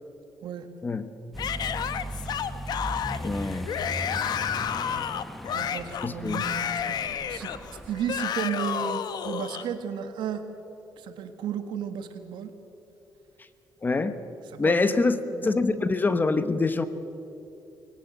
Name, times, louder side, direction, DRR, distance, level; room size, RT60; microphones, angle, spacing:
voice 1, 0.8-1.1 3.2-3.7 6.0-6.4 13.8-14.2 14.6-15.2 15.4-16.9, left 3 dB, 25° left, 11 dB, 1.1 m, -25 dB
Accelerating revving vroom, 1.3-8.2, equal, ahead, 1.1 m, -38 dB
Yell / Screaming, 1.4-9.7, left 8 dB, 65° left, 1.0 m, -31 dB
voice 2, 5.5-7.5 7.9-10.5 11.0-12.5 14.5-14.9 15.3-15.6, right 8 dB, 85° right, 8 dB, 1.7 m, -34 dB
21.5 x 18.0 x 8.1 m, 2.8 s
cardioid pair, 120°, 8 cm